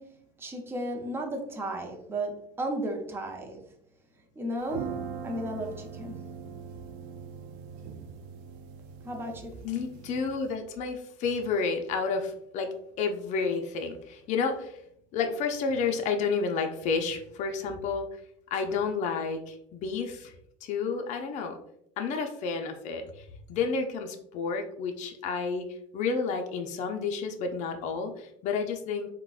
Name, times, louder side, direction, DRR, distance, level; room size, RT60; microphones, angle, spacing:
voice 1, 0.0-3.6 4.4-6.2 9.0-9.6, right 1 dB, 15° right, 2 dB, 0.5 m, -35 dB
sound 1, 4.6-10.5, right 6 dB, 60° right, 0.4 m, -41 dB
voice 2, 9.6-14.8 15.1-18.1 18.5-20.3 20.6-21.6 22.0-23.2 23.5-25.7 25.9-29.1, left 5 dB, 50° left, 4 dB, 0.5 m, -30 dB
3.7 x 2.1 x 2.3 m, 0.73 s
cardioid pair, 125°, 16 cm